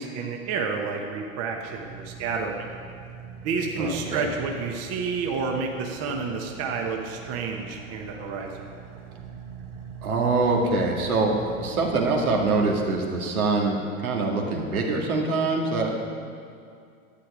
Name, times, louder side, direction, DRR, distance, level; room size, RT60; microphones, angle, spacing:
voice 1, 0.0-2.7 3.4-8.7, right 4 dB, 35° right, 2 dB, 1.1 m, -30 dB
Car / Idling, 1.2-13.6, right 6 dB, 55° right, 1.6 m, -43 dB
voice 2, 3.8-4.3 10.0-16.0, right 3 dB, 80° right, 0 dB, 2.1 m, -24 dB
11.5 x 8.8 x 4.9 m, 2.4 s
hypercardioid pair, 115°, 42 cm